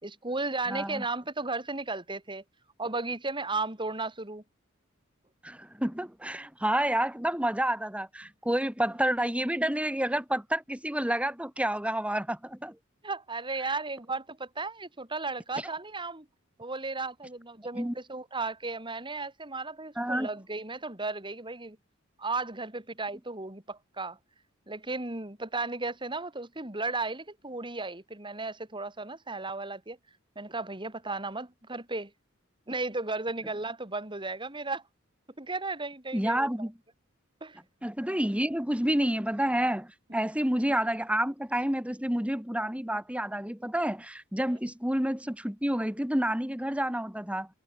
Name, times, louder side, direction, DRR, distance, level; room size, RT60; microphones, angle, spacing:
voice 1, 0.0-2.4 2.8-4.4 13.0-16.3 16.6-21.8 22.2-24.2 24.7-30.0 30.4-32.1 32.7-34.8 35.4-36.5 37.4-37.6, right 3 dB, 25° right, 4.2 m, -35 dB
voice 2, 0.7-1.0 5.4-12.8 17.8-17.9 20.0-20.3 36.1-36.7 37.8-47.5, right 1 dB, 5° right, 2.4 m, -29 dB
head